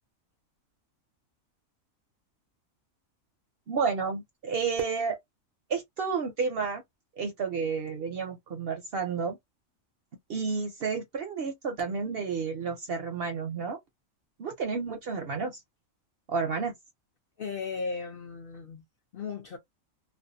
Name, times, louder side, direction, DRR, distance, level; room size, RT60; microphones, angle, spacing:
voice 1, 3.7-5.2 5.7-6.8 7.2-9.4 10.3-13.8 14.4-15.5 16.3-16.7, right 5 dB, 60° right, 0.7 m, -31 dB
voice 2, 17.4-18.8 19.1-19.6, left 5 dB, 55° left, 0.6 m, -36 dB
2.5 x 2.2 x 2.6 m
omnidirectional pair, 1.4 m